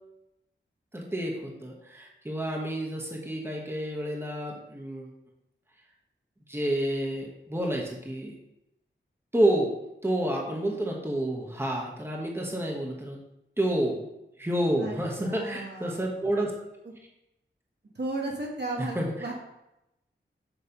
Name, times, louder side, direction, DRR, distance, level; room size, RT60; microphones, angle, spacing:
voice 1, 0.9-5.1 6.5-8.3 9.3-9.7 10.0-13.2 13.6-14.1 14.4-16.5 18.9-19.3, right 1 dB, 10° right, -1 dB, 1.3 m, -29 dB
voice 2, 14.8-16.1 17.9-19.3, right 2 dB, 55° right, -1 dB, 1.5 m, -34 dB
7.0 x 3.3 x 5.3 m, 0.88 s
wide cardioid pair, 50°, 20 cm